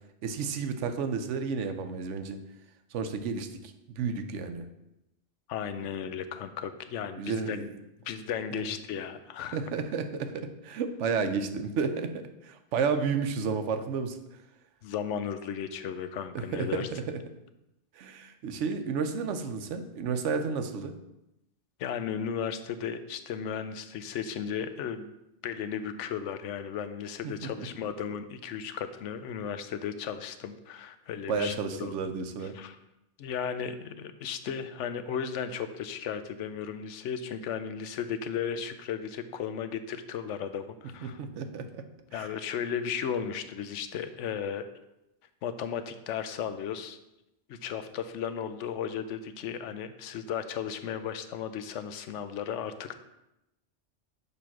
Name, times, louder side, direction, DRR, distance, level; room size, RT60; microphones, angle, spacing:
voice 1, 0.2-2.4 2.9-4.7 7.2-7.7 8.5-8.6 9.5-14.2 16.3-17.2 17.9-21.0 27.2-27.7 31.3-32.6 41.0-41.9 42.1-42.3, right 5 dB, 85° right, 8 dB, 1.0 m, -32 dB
voice 2, 5.5-7.7 8.0-9.6 14.8-16.9 21.8-25.1 25.4-31.9 32.4-32.8 33.2-41.2 42.1-44.6 45.4-47.0 47.5-52.9, left 8 dB, 90° left, 11 dB, 0.9 m, -35 dB
6.8 x 3.2 x 5.9 m, 0.90 s
omnidirectional pair, 1.2 m